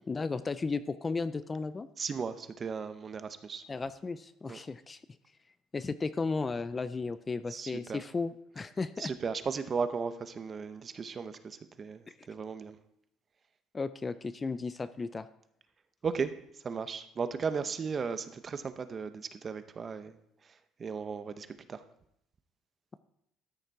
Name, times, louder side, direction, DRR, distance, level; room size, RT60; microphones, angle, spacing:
voice 1, 0.1-1.9 3.7-5.0 5.7-9.1 12.1-12.2 13.7-15.3, left 4 dB, 20° left, 13 dB, 0.4 m, -34 dB
voice 2, 2.0-3.6 4.5-4.6 7.5-8.0 9.0-12.8 16.0-16.3 16.6-20.2 20.8-21.8, right 5 dB, 30° right, 11 dB, 0.8 m, -36 dB
13.0 x 6.5 x 4.7 m, 0.76 s
cardioid pair, 125°, 0 cm